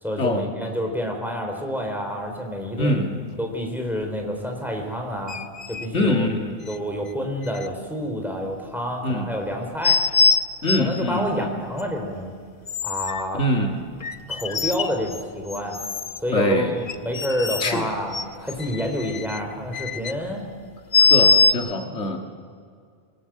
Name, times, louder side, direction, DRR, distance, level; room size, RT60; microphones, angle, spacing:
voice 1, 0.0-5.4 5.7-6.3 6.7-10.0 10.8-12.3 12.8-13.4 14.3-15.8 16.2-20.5 21.0-21.3, equal, ahead, 2 dB, 4.0 m, -28 dB
voice 2, 2.8-3.4 5.9-6.6 9.0-9.3 10.6-11.5 13.3-13.9 16.3-16.7 17.6-17.9 21.0-22.2, left 1 dB, 80° left, 3 dB, 2.2 m, -24 dB
sound 1, 5.3-5.9 6.7-6.8 7.5-7.7 9.8-11.0 11.8-11.9 12.7-13.2 14.0-15.2 15.5-16.2 16.9-17.8 18.1-20.1 20.9-21.5, left 4 dB, 45° left, 0.8 m, -22 dB
26.0 x 18.5 x 7.6 m, 2.2 s
omnidirectional pair, 1.2 m